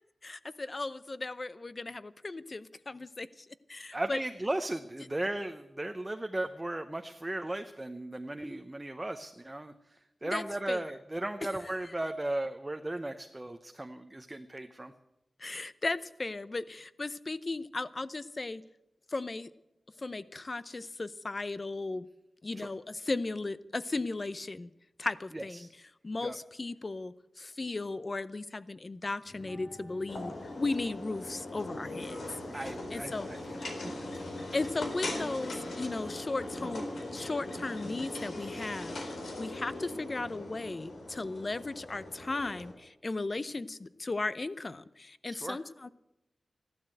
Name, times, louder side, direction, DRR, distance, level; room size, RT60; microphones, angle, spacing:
voice 1, 0.2-4.2 10.2-10.8 15.4-18.6 19.1-19.5 20.0-22.1 22.4-24.7 25.0-25.7 26.0-32.2 32.5-32.6 32.9-33.3 34.5-36.8 37.1-45.9, left 3 dB, 40° left, 15 dB, 0.7 m, -36 dB
voice 2, 3.9-14.9 22.6-22.7 25.3-25.7 26.2-26.4 32.5-34.0 45.3-45.6, right 1 dB, 20° right, 6 dB, 0.8 m, -36 dB
sound 1, 29.2-37.0, left 1 dB, 20° left, 2.2 m, -56 dB
sound 2, 30.1-42.7, left 1 dB, 85° left, 3.7 m, -40 dB
15.0 x 12.5 x 7.8 m, 0.90 s
wide cardioid pair, 95°, 0 cm